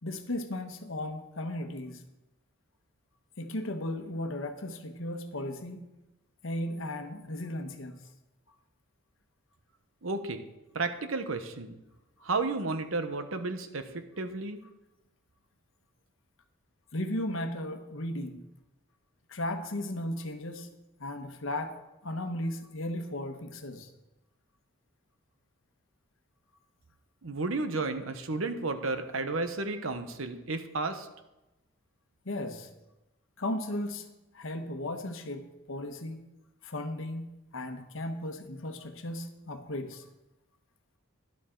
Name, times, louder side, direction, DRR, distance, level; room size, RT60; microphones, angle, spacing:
voice 1, 0.0-2.0 3.4-5.9 6.4-7.9 16.9-18.4 19.3-20.7 21.0-21.8 22.0-23.9 32.2-32.7 33.4-34.1 34.3-36.2 36.6-40.0, left 1 dB, 75° left, 7 dB, 1.1 m, -35 dB
voice 2, 10.0-10.5 10.7-11.8 12.2-14.6 27.2-31.1, right 3 dB, 80° right, 9 dB, 1.0 m, -32 dB
12.5 x 11.0 x 3.9 m, 0.99 s
head